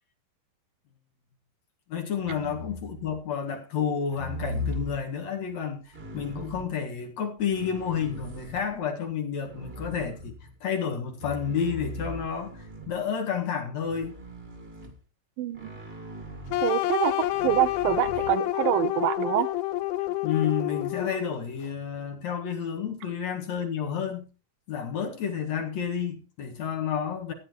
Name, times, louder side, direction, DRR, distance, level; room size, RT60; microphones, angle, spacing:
voice 1, 1.9-10.3 10.6-14.2 20.2-24.3 24.7-27.3, left 7 dB, 55° left, 2.7 m, -30 dB
sound 1, 2.2-3.2 4.1-5.0 5.9-6.7 7.4-8.8 9.4-10.6 11.2-13.1 13.9-15.0 15.5-16.7 17.3-18.3, equal, 25° right, 1.5 m, -39 dB
voice 2, 15.4-15.7 16.6-17.1 17.4-19.5, right 13 dB, 90° right, 2.6 m, -25 dB
sound 2, 16.5-21.5, left 15 dB, 80° left, 2.2 m, -28 dB
15.5 x 10.0 x 3.0 m
omnidirectional pair, 4.0 m